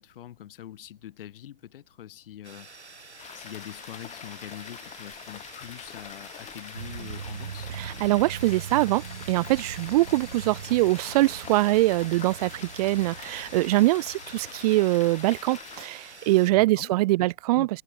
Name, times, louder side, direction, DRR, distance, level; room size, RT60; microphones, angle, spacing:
voice 1, 0.0-2.7 3.3-7.7 16.5-17.7, left 12 dB, 55° left, 4.4 m, -44 dB
sound 1, 2.4-16.5, right 3 dB, 85° right, 6.4 m, -47 dB
sound 2, 3.2-15.9, left 10 dB, 20° left, 4.2 m, -45 dB
sound 3, 6.7-14.7, right 7 dB, 65° right, 6.7 m, -41 dB
voice 2, 7.7-17.7, right 19 dB, 35° right, 0.6 m, -23 dB
figure-of-eight pair, 110°, 33 cm